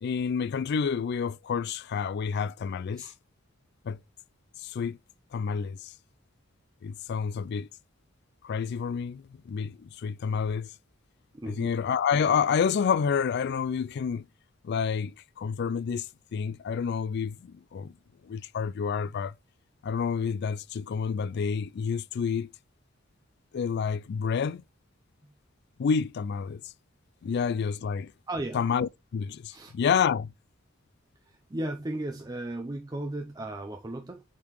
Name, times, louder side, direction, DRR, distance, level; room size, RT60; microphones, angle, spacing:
voice 1, 0.0-3.1 3.8-4.0 4.6-5.0 5.3-5.9 6.8-7.7 8.4-10.7 11.5-14.2 14.6-17.9 18.2-19.3 19.8-22.5 23.5-24.6 25.8-26.7 27.2-28.1 28.5-30.3, left 6 dB, 55° left, 0.3 m, -29 dB
voice 2, 11.3-11.7 28.3-28.6 29.5-29.7 31.3-34.2, right 1 dB, 20° right, 0.6 m, -35 dB
8.4 x 3.7 x 3.1 m
head